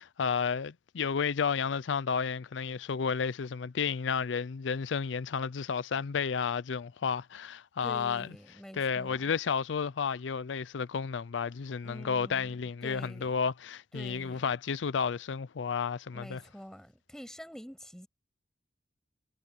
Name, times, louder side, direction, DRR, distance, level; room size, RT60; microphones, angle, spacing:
voice 1, 0.0-8.3 8.7-16.4, left 6 dB, 75° left, 0.5 m, -32 dB
voice 2, 7.8-9.3 11.8-13.4 13.9-14.5 16.1-18.1, equal, 5° left, 6.8 m, -47 dB
head